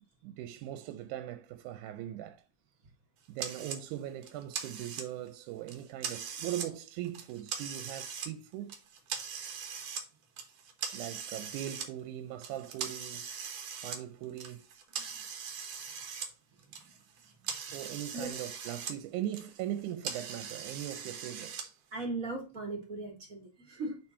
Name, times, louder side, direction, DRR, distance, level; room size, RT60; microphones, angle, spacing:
voice 1, 0.2-2.4 3.3-8.7 10.9-13.3 13.8-14.7 17.7-21.8, right 12 dB, 85° right, 2.1 m, -40 dB
sound 1, 3.4-3.8 4.2-5.3 5.7-6.7 7.0-8.3 8.7-10.1 10.4-11.9 12.4-16.3 16.6-19.0 19.2-21.6, right 7 dB, 60° right, 2.0 m, -40 dB
voice 2, 21.9-24.0, right 2 dB, 35° right, 1.5 m, -38 dB
8.7 x 3.7 x 4.3 m
omnidirectional pair, 3.5 m